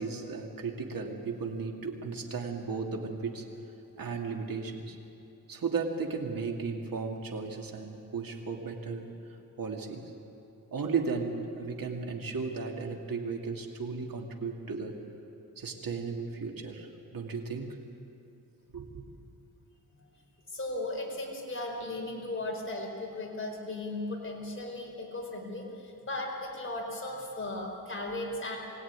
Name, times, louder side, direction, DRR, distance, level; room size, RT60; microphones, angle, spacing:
voice 1, 0.0-3.5 4.0-5.0 5.5-9.1 9.6-10.1 10.7-15.0 15.6-17.8 18.7-19.0, right 4 dB, 70° right, 1 dB, 2.6 m, -35 dB
voice 2, 20.5-28.6, left 2 dB, 35° left, 0 dB, 4.6 m, -36 dB
23.5 x 17.0 x 9.8 m, 2.9 s
wide cardioid pair, 100°, 35 cm